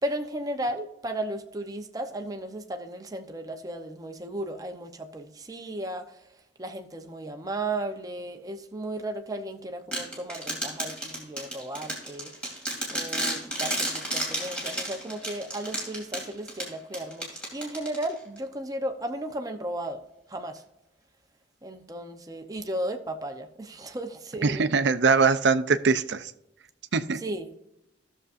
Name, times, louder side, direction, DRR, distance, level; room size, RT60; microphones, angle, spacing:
voice 1, 0.0-6.3 6.6-12.3 12.9-20.0 20.3-20.6 21.6-24.6 27.2-27.5, right 1 dB, 20° right, 0.8 m, -35 dB
sound 1, 9.9-18.4, right 1 dB, 5° left, 2.5 m, -33 dB
voice 2, 24.4-26.3 26.9-27.2, right 4 dB, 65° right, 0.5 m, -22 dB
15.0 x 6.7 x 2.6 m
head